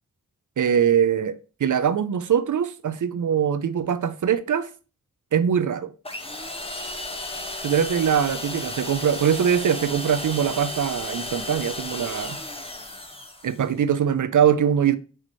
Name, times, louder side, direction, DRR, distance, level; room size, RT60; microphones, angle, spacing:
voice 1, 0.6-4.7 5.3-5.9 7.6-12.4 13.4-15.0, right 8 dB, 55° right, 0.6 m, -22 dB
sound 1, 6.0-13.7, left 1 dB, 15° left, 0.9 m, -34 dB
6.3 x 3.0 x 2.6 m
cardioid pair, 45°, 36 cm